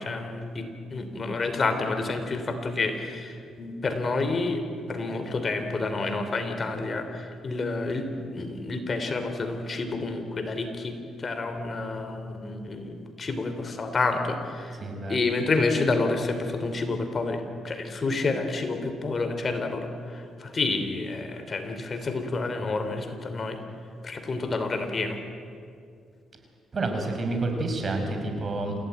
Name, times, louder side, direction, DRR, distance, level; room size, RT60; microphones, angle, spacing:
voice 1, 0.0-4.6 4.9-14.8 15.1-23.6 24.0-25.2, left 3 dB, 40° left, 7 dB, 3.2 m, -29 dB
voice 2, 14.8-15.2 26.7-28.8, right 2 dB, 40° right, 4 dB, 5.4 m, -29 dB
27.5 x 16.5 x 9.4 m, 2.4 s
cardioid pair, 90°, 0 cm